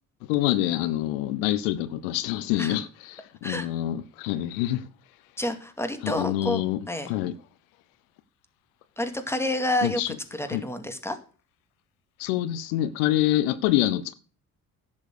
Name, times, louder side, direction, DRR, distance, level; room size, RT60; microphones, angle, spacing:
voice 1, 0.3-4.8 6.0-6.8 7.1-7.3 9.8-10.1 10.5-10.6 12.2-14.1, left 14 dB, 80° left, 0.8 m, -26 dB
voice 2, 5.4-6.6 6.9-7.1 9.0-11.2, left 1 dB, 5° left, 2.2 m, -29 dB
10.5 x 7.3 x 6.5 m
hypercardioid pair, 65°, 41 cm